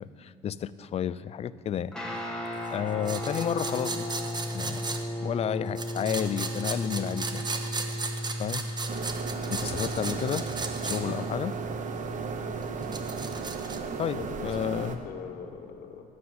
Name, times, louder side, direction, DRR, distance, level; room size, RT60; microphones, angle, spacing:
voice 1, 0.0-1.9 2.4-4.1 4.5-7.5 8.4-8.7 9.5-10.4 10.8-11.6 14.0-15.0, left 9 dB, 40° left, 16 dB, 0.4 m, -32 dB
Guitar, 1.9-13.4, equal, 5° left, 1.8 m, -36 dB
sound 1, 3.1-5.0 5.8-11.0 11.3-11.4 12.6-13.8, right 3 dB, 25° right, 1.0 m, -36 dB
sound 2, 8.9-15.0, right 5 dB, 50° right, 1.0 m, -35 dB
voice 2, 14.1-16.0, left 7 dB, 60° left, 2 dB, 1.5 m, -43 dB
11.0 x 6.8 x 7.8 m, 2.7 s
cardioid pair, 110°, 17 cm